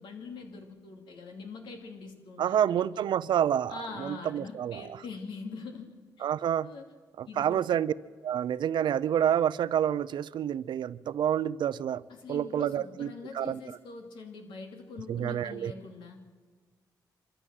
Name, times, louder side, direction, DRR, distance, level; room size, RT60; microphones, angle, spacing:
voice 1, 0.0-3.1 3.7-6.3 6.6-6.9 7.3-7.7 12.1-16.2, left 4 dB, 85° left, 2.7 m, -43 dB
voice 2, 2.4-4.8 6.2-6.7 7.2-7.9 8.2-12.0 12.3-13.6 15.1-15.7, right 10 dB, 75° right, 0.6 m, -28 dB
25.0 x 14.0 x 7.6 m
cardioid pair, 75°, 8 cm